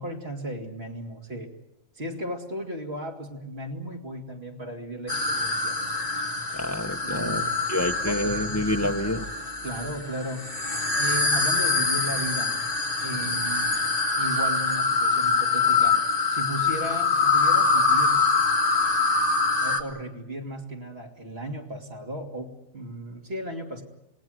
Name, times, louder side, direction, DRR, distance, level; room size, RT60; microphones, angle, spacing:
voice 1, 0.0-1.5 2.0-5.8 7.0-7.5 8.1-8.6 9.6-10.4 10.9-12.6 13.0-13.8 14.1-18.2 19.6-23.8, right 1 dB, 55° right, 2 dB, 3.0 m, -35 dB
sound 1, 5.1-19.8, left 4 dB, 50° left, 2.2 m, -24 dB
voice 2, 6.5-7.4 7.7-9.3, left 1 dB, 15° left, 6 dB, 1.0 m, -27 dB
27.5 x 19.0 x 7.8 m, 0.87 s
omnidirectional pair, 1.2 m